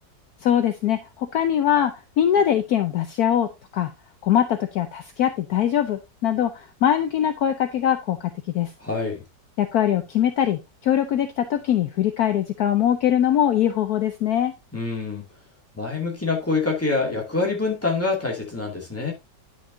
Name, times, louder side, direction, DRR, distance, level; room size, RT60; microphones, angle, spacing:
voice 1, 0.4-3.9 4.2-8.7 9.6-14.5, left 10 dB, 65° left, 1.1 m, -22 dB
voice 2, 8.8-9.2 14.7-15.2 15.7-19.1, left 3 dB, 10° left, 2.2 m, -25 dB
10.0 x 6.1 x 2.7 m
omnidirectional pair, 1.9 m